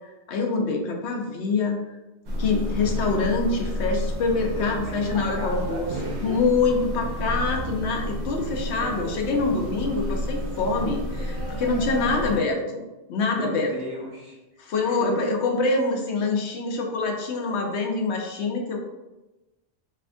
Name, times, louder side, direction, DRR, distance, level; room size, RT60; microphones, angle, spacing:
voice 1, 0.3-1.8 2.4-5.9 6.2-12.8 13.1-13.7 14.6-18.8, left 3 dB, 85° left, 1 dB, 0.9 m, -25 dB
sound 1, 2.3-12.4, equal, 80° right, 1.0 m, -31 dB
voice 2, 4.5-6.4 8.8-9.1 13.3-14.4 14.8-15.3, equal, 50° right, -3 dB, 0.8 m, -37 dB
3.3 x 2.7 x 2.5 m, 1.0 s
omnidirectional pair, 1.1 m